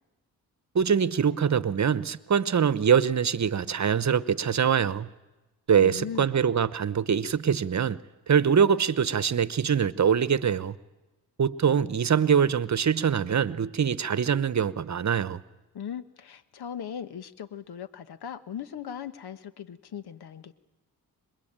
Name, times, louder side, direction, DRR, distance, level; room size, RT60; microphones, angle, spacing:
voice 1, 0.7-5.1 5.7-8.0 8.3-10.8 11.4-15.4, right 7 dB, 45° right, 1.0 m, -24 dB
voice 2, 5.8-6.3 15.7-20.5, left 8 dB, 75° left, 1.4 m, -38 dB
26.0 x 21.5 x 8.9 m
cardioid pair, 65°, 39 cm